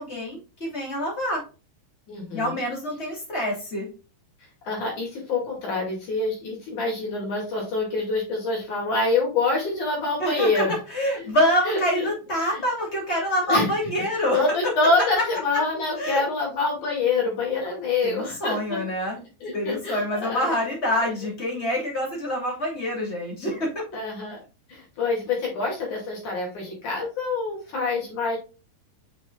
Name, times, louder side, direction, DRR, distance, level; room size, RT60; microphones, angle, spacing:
voice 1, 0.0-1.4 2.3-3.9 10.2-10.6 10.9-14.4 16.0-16.2 18.0-19.2 19.5-23.7, equal, 20° left, -2 dB, 1.8 m, -26 dB
voice 2, 2.1-2.6 4.6-10.7 11.2-11.3 11.6-12.1 12.4-12.6 13.5-13.7 14.3-18.8 19.4-20.6 23.9-24.4 24.7-28.4, left 3 dB, 50° left, -1 dB, 3.1 m, -26 dB
7.5 x 5.9 x 2.3 m, 0.33 s
omnidirectional pair, 5.7 m